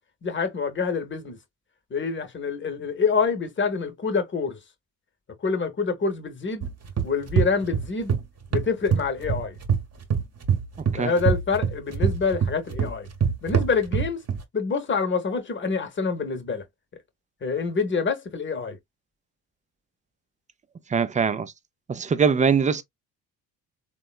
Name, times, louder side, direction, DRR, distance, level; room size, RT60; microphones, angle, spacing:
voice 1, 0.2-1.4 1.9-4.6 5.4-6.7 7.0-8.2 8.5-9.6 11.0-13.1 13.4-14.2 14.5-16.6 17.4-18.8, left 5 dB, 30° left, 0.8 m, -26 dB
sound 1, 6.6-8.2 8.5-9.8 10.1-14.4, right 7 dB, 40° right, 0.9 m, -24 dB
voice 2, 10.8-11.1 20.9-21.5 21.9-22.8, right 6 dB, 20° right, 0.4 m, -22 dB
3.5 x 2.2 x 2.3 m
supercardioid pair, 55°, 40 cm